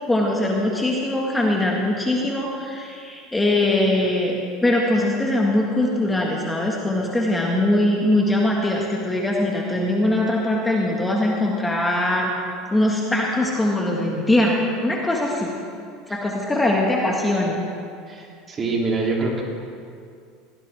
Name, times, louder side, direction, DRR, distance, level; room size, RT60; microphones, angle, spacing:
voice 1, 0.1-12.3 12.7-15.5 16.1-17.6, left 1 dB, 10° left, -2 dB, 1.9 m, -21 dB
voice 2, 18.1-19.4, right 3 dB, 30° right, -2 dB, 3.4 m, -25 dB
17.5 x 15.5 x 3.7 m, 2.3 s
supercardioid pair, 100°, 0 cm